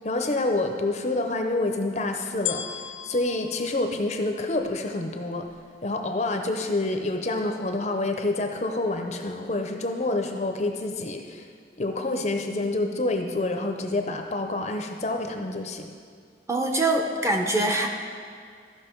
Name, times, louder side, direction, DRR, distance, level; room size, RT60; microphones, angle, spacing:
voice 1, 0.0-5.5 5.8-11.5 11.8-15.9, left 2 dB, 35° left, 4 dB, 0.6 m, -28 dB
sound 1, 2.5-4.8 5.5-5.6, left 10 dB, 80° left, 0.6 m, -36 dB
voice 2, 16.5-17.9, right 2 dB, 15° right, 2 dB, 0.7 m, -23 dB
14.0 x 5.8 x 4.5 m, 2.2 s
head